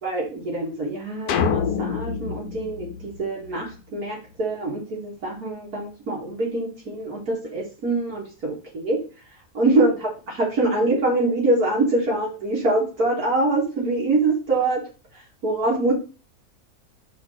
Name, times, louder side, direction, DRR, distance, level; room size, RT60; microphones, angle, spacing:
voice 1, 0.0-9.0 9.5-14.8 15.4-15.9, right 2 dB, 75° right, -3 dB, 2.7 m, -24 dB
sound 1, 1.3-3.7, left 7 dB, 85° left, 1.2 m, -26 dB
5.1 x 4.0 x 5.7 m, 0.33 s
omnidirectional pair, 1.6 m